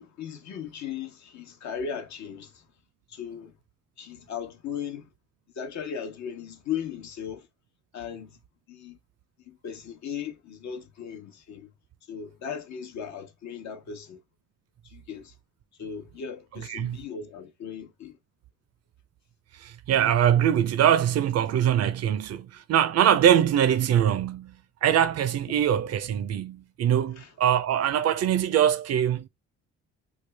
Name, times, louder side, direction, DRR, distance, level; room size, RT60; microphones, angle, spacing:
voice 1, 0.0-2.6 3.1-3.5 4.0-5.1 5.6-7.5 7.9-8.4 8.7-9.0 9.5-11.7 12.1-14.2 14.8-15.3 15.8-18.2 27.2-27.3, left 7 dB, 65° left, 0.9 m, -37 dB
voice 2, 16.5-17.0 19.5-29.3, right 10 dB, 55° right, 0.5 m, -23 dB
3.2 x 2.3 x 3.3 m
cardioid pair, 90°, 30 cm